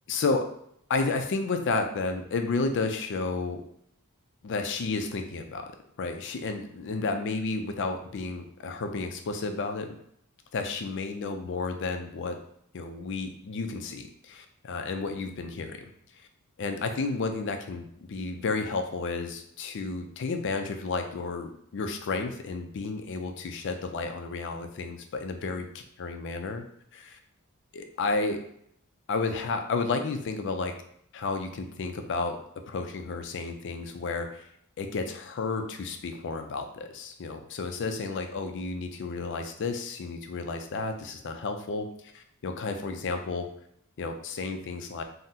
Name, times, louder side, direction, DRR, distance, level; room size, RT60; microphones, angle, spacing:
voice 1, 0.1-0.5 0.9-3.6 4.4-5.7 6.0-10.0 10.5-12.4 12.7-15.8 16.2-16.3 16.6-26.6 26.9-27.2 27.7-28.4 29.1-30.7 31.1-32.4 32.7-34.5 34.8-41.9 42.1-43.5 44.0-45.0, left 3 dB, 55° left, 6 dB, 0.4 m, -32 dB
3.7 x 2.0 x 2.7 m, 0.70 s
head